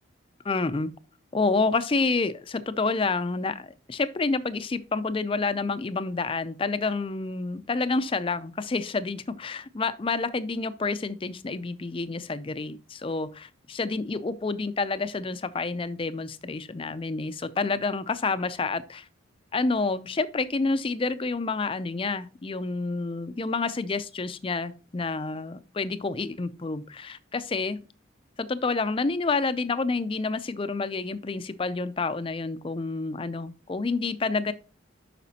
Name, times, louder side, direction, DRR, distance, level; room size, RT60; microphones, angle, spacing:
voice 1, 0.4-0.9 1.3-19.1 19.5-27.8 28.4-34.5, left 3 dB, 25° left, 0.4 m, -29 dB
8.3 x 5.9 x 2.8 m
head